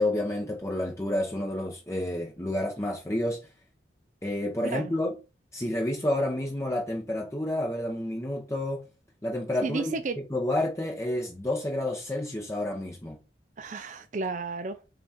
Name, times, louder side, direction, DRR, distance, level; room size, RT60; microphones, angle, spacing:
voice 1, 0.0-3.4 4.2-5.2 5.5-8.9 9.2-13.2, left 1 dB, 15° left, 0.8 m, -30 dB
voice 2, 9.6-10.2 13.6-14.9, right 3 dB, 45° right, 0.4 m, -32 dB
5.7 x 4.1 x 5.0 m
head